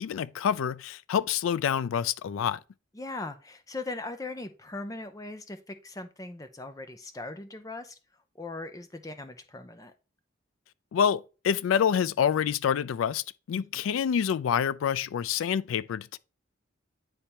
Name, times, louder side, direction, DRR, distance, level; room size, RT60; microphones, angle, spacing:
voice 1, 0.0-2.6 10.9-16.2, left 8 dB, 85° left, 0.3 m, -27 dB
voice 2, 2.9-8.0 8.4-9.9 13.5-13.8, left 2 dB, 15° left, 0.5 m, -39 dB
9.7 x 3.3 x 2.9 m
head